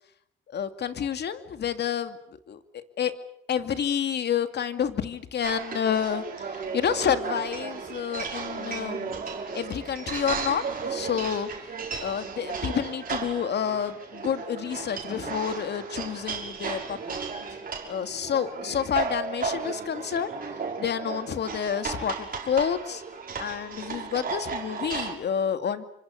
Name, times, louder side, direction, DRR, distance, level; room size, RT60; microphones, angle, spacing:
voice 1, 0.5-2.2 2.5-3.1 3.5-9.2 9.5-11.5 12.0-17.2 17.9-23.0 23.4-25.8, left 8 dB, 60° left, 9 dB, 2.6 m, -29 dB
sound 1, 5.4-25.1, right 5 dB, 45° right, 6.0 m, -35 dB
28.5 x 25.5 x 6.7 m, 0.73 s
cardioid pair, 90°, 20 cm